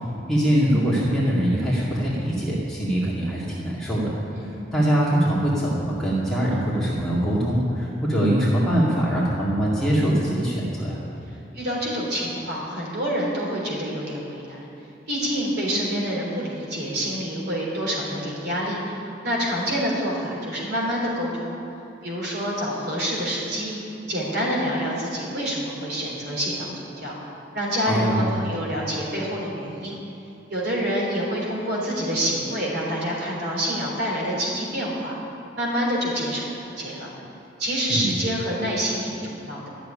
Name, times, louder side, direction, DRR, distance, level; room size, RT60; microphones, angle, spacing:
voice 1, 0.3-4.1 4.5-11.0 27.9-28.3 37.9-38.1, right 1 dB, 5° left, -8 dB, 1.9 m, -23 dB
voice 2, 11.5-14.7 15.1-18.9 19.2-21.6 22.0-27.1 27.5-30.0 30.5-35.1 35.6-37.1 37.6-39.7, equal, 60° right, -4 dB, 3.5 m, -27 dB
12.0 x 6.9 x 10.0 m, 2.9 s
head